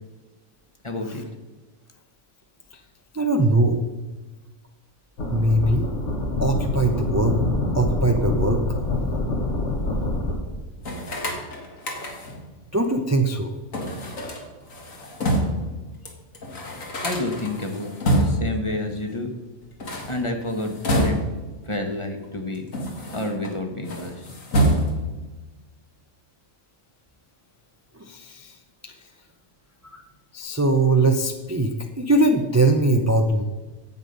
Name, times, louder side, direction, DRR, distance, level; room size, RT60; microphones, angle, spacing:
voice 1, 0.8-1.2 17.0-19.3 20.1-21.2 21.6-22.7 23.1-24.3, left 2 dB, 25° left, 4 dB, 1.0 m, -29 dB
voice 2, 3.1-3.8 5.3-5.9 6.4-7.4 7.7-8.6 12.7-13.5 27.9-28.6 28.8-28.9 29.9-30.0 30.3-33.4, right 2 dB, 25° right, 4 dB, 0.4 m, -21 dB
sound 1, 5.2-10.4, left 2 dB, 60° left, 1.8 m, -25 dB
sound 2, 10.8-12.5 13.7-15.7 16.1-16.2 16.3-18.6 19.7-21.5 22.2-23.5 23.8-25.2, equal, 75° left, 2.2 m, -26 dB
9.5 x 8.2 x 5.3 m, 1.2 s
omnidirectional pair, 1.4 m